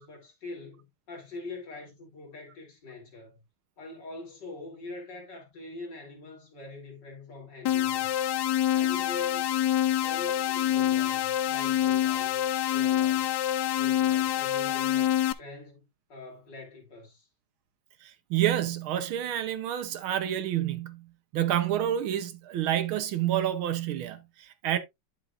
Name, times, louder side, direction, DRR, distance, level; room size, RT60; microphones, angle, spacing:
voice 1, 0.0-3.4 3.8-8.2 8.7-9.6 10.0-13.4 13.7-17.3, left 3 dB, 50° left, 3.6 m, -44 dB
sound 1, 7.7-15.3, left 12 dB, 80° left, 0.9 m, -26 dB
voice 2, 18.0-21.0 21.3-24.8, right 11 dB, 75° right, 1.6 m, -28 dB
10.0 x 7.0 x 2.4 m
omnidirectional pair, 2.4 m